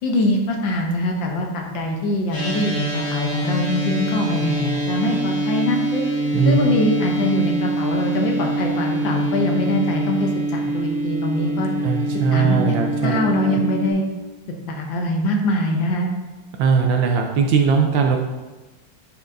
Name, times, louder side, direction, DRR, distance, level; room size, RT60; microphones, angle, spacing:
voice 1, 0.0-6.0 6.4-11.7 12.3-12.6 13.0-14.0 14.7-16.1, left 1 dB, 70° left, 1 dB, 1.4 m, -23 dB
sound 1, 2.3-13.9, right 1 dB, 85° left, 2.5 m, -25 dB
voice 2, 11.8-13.6 16.6-18.2, right 5 dB, 75° right, 3 dB, 1.2 m, -19 dB
9.6 x 4.4 x 2.6 m, 1.2 s
omnidirectional pair, 2.4 m